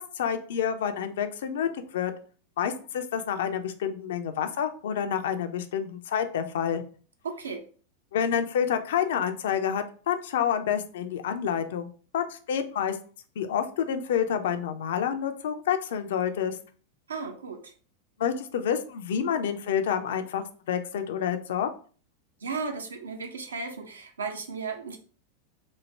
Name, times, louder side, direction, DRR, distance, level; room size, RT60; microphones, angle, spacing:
voice 1, 0.0-2.1 2.6-6.8 8.1-13.0 13.4-16.6 18.2-21.7, left 8 dB, 60° left, 8 dB, 0.3 m, -28 dB
voice 2, 7.2-7.7 17.1-17.7 22.4-25.0, right 4 dB, 70° right, 5 dB, 0.5 m, -35 dB
3.1 x 2.0 x 3.1 m, 0.40 s
figure-of-eight pair, 90°, 0 cm